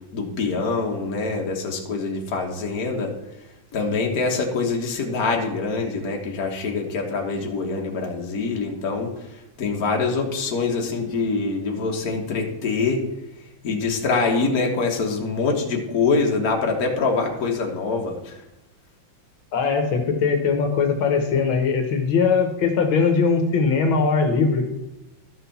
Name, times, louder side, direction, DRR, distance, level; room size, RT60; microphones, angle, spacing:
voice 1, 0.1-3.1 3.7-9.1 9.6-13.0 13.6-18.4, left 4 dB, 50° left, 0 dB, 1.8 m, -24 dB
voice 2, 19.5-24.7, left 5 dB, 85° left, 5 dB, 1.9 m, -20 dB
13.0 x 6.0 x 4.2 m, 0.96 s
omnidirectional pair, 2.2 m